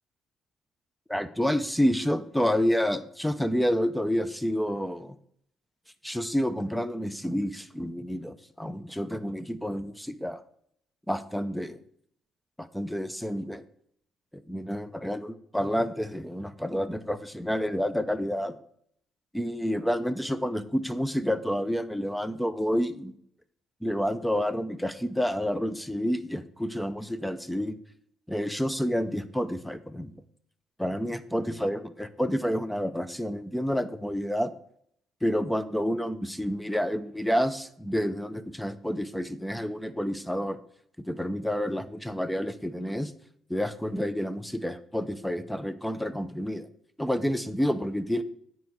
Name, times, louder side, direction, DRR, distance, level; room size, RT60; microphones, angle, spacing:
voice 1, 1.1-5.2 6.0-10.4 11.1-11.8 12.6-13.6 14.3-18.6 19.3-23.1 23.8-27.8 28.3-30.1 30.8-34.5 35.2-40.6 41.1-43.1 43.5-46.7 47.0-48.2, equal, 5° left, 11 dB, 0.7 m, -29 dB
9.4 x 4.7 x 6.2 m, 0.67 s
cardioid pair, 115°, 0 cm